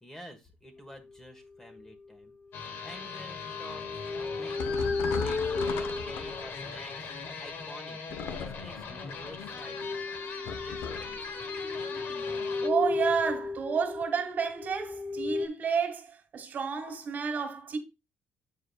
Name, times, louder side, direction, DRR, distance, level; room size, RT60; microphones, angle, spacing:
voice 1, 0.0-4.0 4.3-7.1 7.4-8.0 8.4-9.9 10.6-11.2, equal, 15° left, 1.5 m, -49 dB
sound 1, 0.8-1.0 1.7-1.9 2.8-7.3 9.5-15.5, left 3 dB, 30° left, 0.7 m, -34 dB
sound 2, 2.5-12.7, left 5 dB, 65° left, 1.2 m, -40 dB
sound 3, 4.6-6.7 8.1-8.9 10.5-11.2, left 6 dB, 80° left, 0.7 m, -37 dB
voice 2, 12.6-17.8, right 6 dB, 50° right, 1.8 m, -30 dB
8.7 x 4.8 x 2.4 m
cardioid pair, 95°, 4 cm